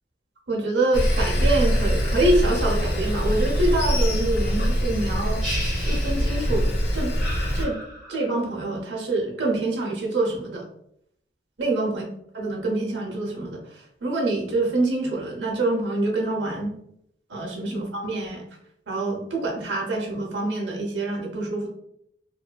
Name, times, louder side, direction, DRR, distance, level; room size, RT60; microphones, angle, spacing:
voice 1, 0.5-5.4 5.8-7.1 7.5-7.8 8.1-10.6 11.6-12.0 12.3-16.7 17.3-18.4 18.9-21.7, right 2 dB, 75° right, -2 dB, 0.7 m, -26 dB
Sawing, 0.9-7.6, equal, 70° left, 0.7 m, -23 dB
sound 1, 5.4-6.7 7.2-8.4, equal, ahead, 0.8 m, -35 dB
2.6 x 2.4 x 2.2 m, 0.74 s
head